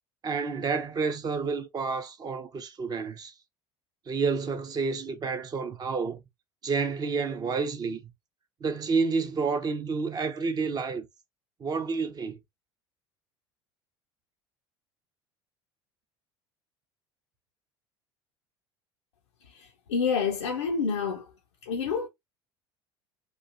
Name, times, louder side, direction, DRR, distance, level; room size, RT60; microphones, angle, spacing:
voice 1, 0.2-3.3 4.1-6.2 6.6-8.1 8.6-11.1 11.6-12.4, right 4 dB, 25° right, 0.6 m, -29 dB
voice 2, 19.5-21.3 21.6-22.1, left 5 dB, 75° left, 0.5 m, -28 dB
3.0 x 2.3 x 2.6 m
figure-of-eight pair, 65°, 15 cm